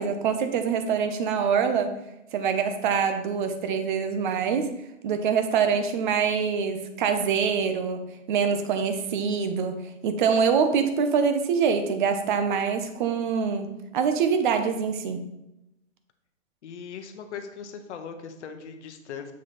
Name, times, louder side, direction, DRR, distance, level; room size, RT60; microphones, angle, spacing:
voice 1, 0.0-2.0 2.3-4.8 5.0-15.2, right 6 dB, 40° right, 8 dB, 0.7 m, -25 dB
voice 2, 16.6-19.3, left 6 dB, 60° left, 6 dB, 0.9 m, -39 dB
7.2 x 3.1 x 4.2 m, 0.89 s
hypercardioid pair, 140°, 39 cm